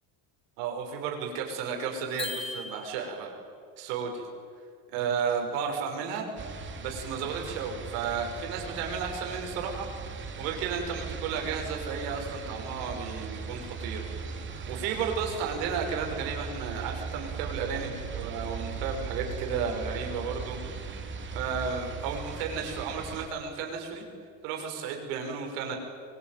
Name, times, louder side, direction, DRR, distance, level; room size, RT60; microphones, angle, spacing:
voice 1, 0.6-3.4 3.8-4.3 4.9-6.3 6.8-9.9 10.4-14.0 14.7-20.6 21.1-24.0 24.4-25.7, right 6 dB, 80° right, 2 dB, 6.4 m, -33 dB
sound 1, 2.2-3.3, left 2 dB, 10° left, 2.9 m, -37 dB
sound 2, 6.4-23.3, right 5 dB, 25° right, 2.7 m, -38 dB
24.0 x 23.0 x 9.5 m, 2.3 s
cardioid pair, 165°, 47 cm